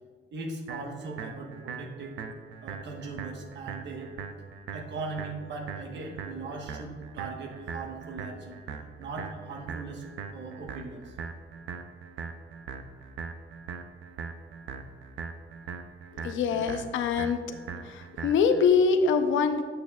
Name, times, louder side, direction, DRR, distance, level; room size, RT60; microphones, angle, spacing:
voice 1, 0.3-2.2 2.6-4.1 4.7-8.6 9.0-10.0 10.3-11.1, right 3 dB, 65° right, 2 dB, 1.1 m, -39 dB
sound 1, 0.7-18.7, right 5 dB, 80° right, 0.5 m, -41 dB
voice 2, 16.1-17.4 17.8-19.6, left 5 dB, 75° left, 8 dB, 0.6 m, -24 dB
8.5 x 6.1 x 2.3 m, 1.5 s
cardioid pair, 90°, 20 cm